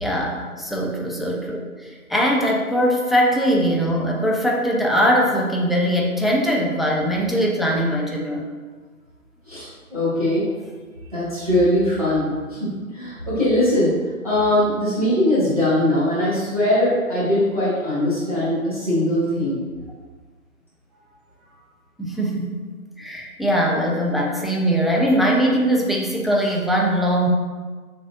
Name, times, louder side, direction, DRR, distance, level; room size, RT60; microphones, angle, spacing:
voice 1, 0.0-8.5 22.0-22.6 23.0-27.3, equal, ahead, -2 dB, 0.3 m, -21 dB
voice 2, 9.5-10.4 11.1-13.9 14.2-19.6, left 1 dB, 25° right, -12 dB, 0.9 m, -21 dB
4.4 x 3.4 x 2.4 m, 1.4 s
figure-of-eight pair, 160°, 45 cm